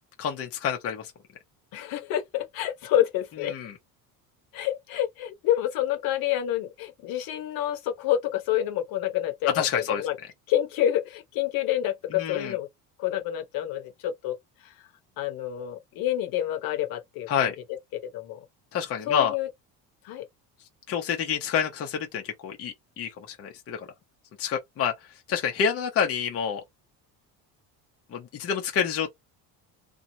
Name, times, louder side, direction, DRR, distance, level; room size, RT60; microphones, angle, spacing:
voice 1, 0.2-1.1 3.5-3.8 9.4-10.1 12.1-12.6 17.3-17.6 18.7-19.3 20.9-23.9 24.4-26.6 28.1-29.1, left 7 dB, 40° left, 0.8 m, -28 dB
voice 2, 1.7-3.6 4.5-10.2 10.5-12.7 13.0-14.4 14.6-14.7 15.2-17.5 18.1-18.4 19.1-19.5 20.0-20.3, left 12 dB, 65° left, 1.0 m, -28 dB
3.0 x 2.3 x 2.6 m
cardioid pair, 150°, 38 cm